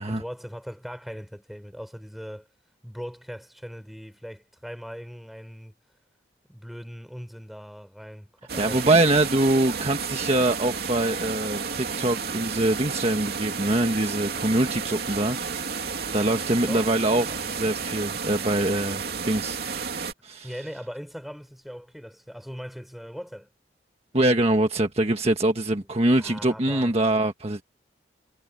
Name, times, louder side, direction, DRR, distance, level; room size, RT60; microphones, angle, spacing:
voice 1, 0.1-2.5 2.8-5.8 6.5-8.9 16.4-16.9 20.4-23.5 26.0-27.0, equal, ahead, 4.3 m, -40 dB
sound 1, 8.5-20.1, right 5 dB, 55° right, 2.9 m, -32 dB
voice 2, 8.6-15.4 16.1-19.6 20.2-20.5 24.1-27.6, right 1 dB, 35° right, 1.5 m, -23 dB
head